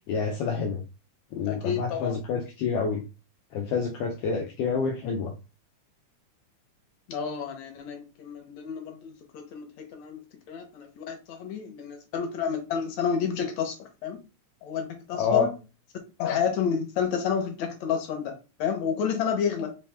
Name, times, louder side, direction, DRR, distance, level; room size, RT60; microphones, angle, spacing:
voice 1, 0.1-0.8 1.3-3.0 3.5-5.3 15.2-15.5, left 5 dB, 90° left, 1.3 m, -28 dB
voice 2, 1.5-2.2 7.1-10.2 10.5-14.2 14.6-15.6 16.2-19.8, left 7 dB, 70° left, 1.8 m, -30 dB
4.8 x 2.7 x 3.3 m
omnidirectional pair, 3.5 m